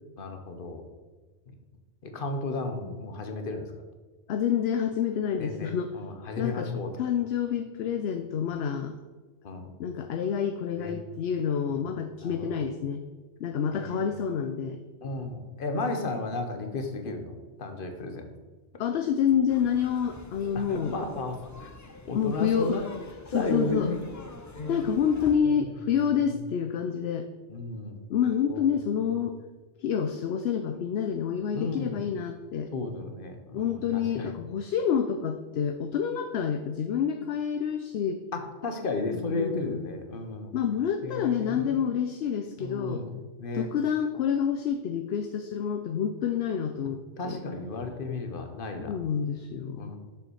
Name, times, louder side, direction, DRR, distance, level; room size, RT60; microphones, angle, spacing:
voice 1, 0.2-0.8 2.0-3.7 5.4-6.9 9.4-9.7 10.8-11.0 11.7-11.9 12.2-12.6 13.7-14.1 15.0-17.3 17.6-18.3 20.5-21.7 22.0-22.8 23.3-24.1 24.5-24.9 25.4-25.6 27.5-28.0 28.5-28.7 31.5-32.0 32.7-34.3 38.3-40.6 41.0-41.8 42.6-43.1 43.4-43.7 47.2-49.0 49.7-50.0, left 2 dB, 50° left, 5 dB, 1.2 m, -34 dB
voice 2, 4.3-5.9 6.4-6.7 7.0-9.0 9.8-13.0 13.4-14.8 18.8-20.9 22.1-22.8 23.3-23.9 24.7-27.3 28.1-29.4 29.8-32.7 33.5-38.2 39.1-39.8 40.5-43.0 43.5-47.4 48.8-50.0, left 8 dB, 65° left, 7 dB, 0.8 m, -28 dB
sound 1, 19.5-25.4, left 3 dB, 25° left, 0.4 m, -46 dB
7.1 x 5.7 x 6.3 m, 1.3 s
omnidirectional pair, 1.2 m